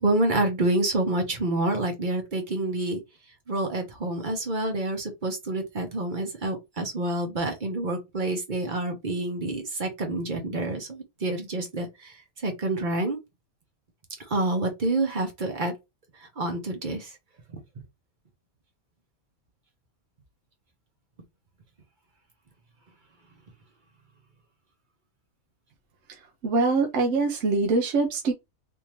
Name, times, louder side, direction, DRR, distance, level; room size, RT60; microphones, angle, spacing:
voice 1, 0.0-3.0 3.5-12.1 12.4-13.2 14.3-15.7 16.4-17.1, right 2 dB, 40° right, 1.0 m, -27 dB
voice 2, 26.4-28.3, right 3 dB, 65° right, 0.9 m, -23 dB
3.5 x 2.8 x 3.0 m
omnidirectional pair, 1.5 m